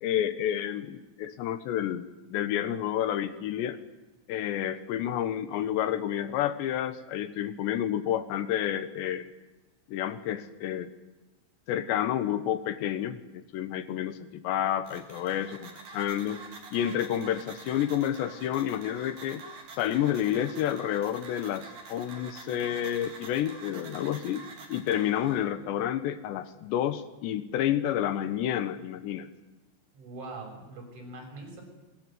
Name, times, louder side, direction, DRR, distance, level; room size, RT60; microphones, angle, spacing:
voice 1, 0.0-3.8 4.3-9.3 9.9-10.9 11.7-16.4 16.7-19.4 19.8-24.4 24.7-29.3, left 11 dB, 75° left, 13 dB, 3.1 m, -30 dB
sound 1, 14.8-25.5, right 4 dB, 50° right, 5.4 m, -47 dB
voice 2, 29.9-31.6, right 2 dB, 75° right, 3 dB, 9.3 m, -42 dB
24.0 x 22.5 x 9.1 m, 1.1 s
omnidirectional pair, 5.5 m